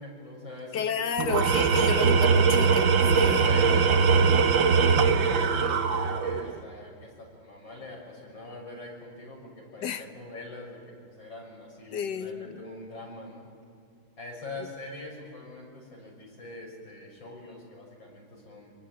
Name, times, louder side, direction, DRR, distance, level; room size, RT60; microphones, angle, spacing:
voice 1, 0.0-0.9 1.7-2.7 3.2-13.5 14.2-18.7, left 2 dB, 90° left, 0 dB, 7.2 m, -43 dB
voice 2, 0.7-3.5 9.8-10.1 11.9-12.6, left 7 dB, 65° left, 10 dB, 1.7 m, -32 dB
Tools, 1.2-6.6, right 5 dB, 85° right, 2.0 m, -21 dB
25.5 x 24.5 x 9.2 m, 2.3 s
omnidirectional pair, 2.0 m